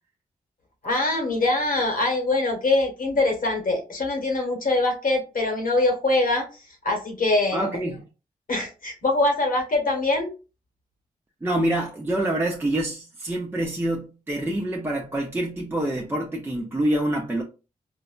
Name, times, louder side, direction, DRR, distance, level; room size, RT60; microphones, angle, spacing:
voice 1, 0.8-6.5 6.8-7.7 8.5-10.3, left 2 dB, 65° left, 1.1 m, -23 dB
voice 2, 7.5-8.0 11.4-17.4, right 1 dB, 15° right, 0.6 m, -26 dB
4.0 x 2.1 x 2.4 m
cardioid pair, 65°, 16 cm